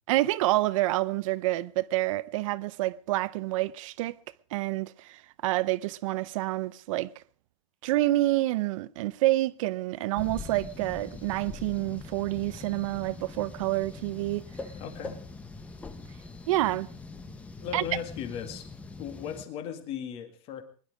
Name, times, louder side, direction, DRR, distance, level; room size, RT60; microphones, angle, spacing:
voice 1, 0.1-4.1 4.5-7.1 7.8-14.4 16.5-16.9 17.7-17.8, right 17 dB, 65° right, 0.7 m, -28 dB
sound 1, 10.2-19.4, left 3 dB, 10° left, 0.8 m, -43 dB
voice 2, 14.7-15.2 17.6-18.7 19.0-20.6, left 8 dB, 35° left, 2.0 m, -37 dB
21.5 x 11.5 x 4.9 m
supercardioid pair, 175°, 18 cm